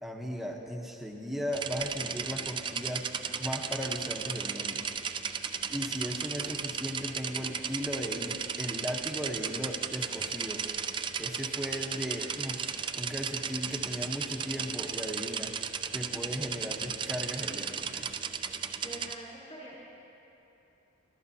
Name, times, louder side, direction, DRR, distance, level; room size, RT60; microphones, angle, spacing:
voice 1, 0.0-3.0 3.4-4.8 5.6-10.6 11.2-12.6 12.9-15.5 15.9-18.2, equal, ahead, 0 dB, 0.9 m, -37 dB
sound 1, 1.5-19.1, right 6 dB, 25° right, 0.3 m, -35 dB
voice 2, 18.7-19.9, right 1 dB, 35° left, -7 dB, 3.7 m, -45 dB
25.0 x 13.0 x 2.8 m, 2.9 s
head